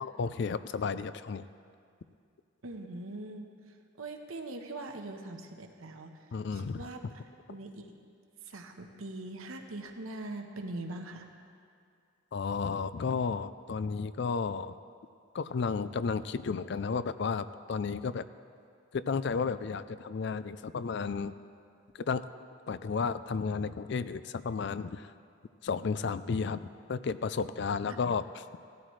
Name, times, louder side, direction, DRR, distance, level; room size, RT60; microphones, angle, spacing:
voice 1, 0.0-1.5 6.3-6.8 12.3-14.8 15.3-18.2 18.9-21.3 22.1-22.2 22.7-25.1 25.6-26.6 26.9-28.2, left 5 dB, 55° left, 14 dB, 0.4 m, -32 dB
voice 2, 2.6-7.0 7.5-7.9 8.4-11.3 28.0-28.1, right 2 dB, 90° right, 4 dB, 1.1 m, -42 dB
17.5 x 12.5 x 3.2 m, 2.3 s
head